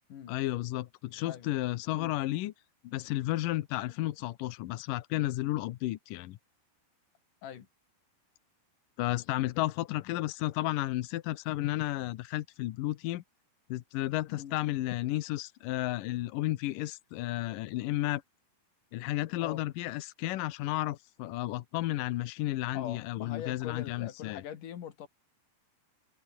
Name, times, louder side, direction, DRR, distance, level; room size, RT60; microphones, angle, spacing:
voice 1, 0.3-2.5 2.8-6.4 9.0-13.2 13.7-18.2 18.9-24.4, left 16 dB, 80° left, 2.0 m, -32 dB
voice 2, 14.3-14.6 19.4-19.6 22.7-25.1, left 9 dB, 55° left, 3.3 m, -42 dB
omnidirectional pair, 4.9 m